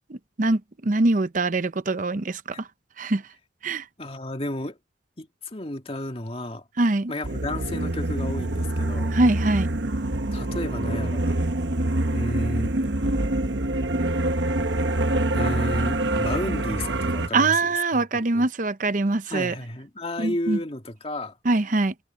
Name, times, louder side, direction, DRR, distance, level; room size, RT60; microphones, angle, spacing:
voice 1, 0.1-2.7 3.0-3.2 3.6-3.8 6.8-7.1 9.1-9.7 17.3-19.5 20.2-20.6 21.4-21.9, right 2 dB, 45° right, 0.7 m, -23 dB
voice 2, 4.0-4.8 5.2-6.6 7.1-9.2 10.3-11.4 12.1-12.7 15.3-17.6 17.9-18.5 19.3-21.3, left 1 dB, 30° left, 2.2 m, -32 dB
sound 1, 7.2-17.3, right 1 dB, 75° right, 1.2 m, -25 dB
head